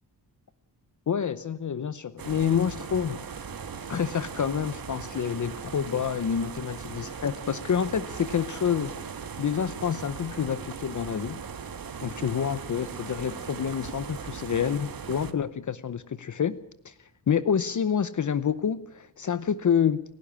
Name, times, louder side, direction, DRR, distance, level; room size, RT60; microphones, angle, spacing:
voice 1, 1.1-3.2 3.8-8.9 9.4-11.4 12.0-16.6 16.8-20.0, left 8 dB, 50° left, 14 dB, 0.8 m, -28 dB
sound 1, 2.2-15.3, right 6 dB, 60° right, 1.6 m, -39 dB
29.5 x 12.0 x 8.7 m, 0.74 s
wide cardioid pair, 155°, 40 cm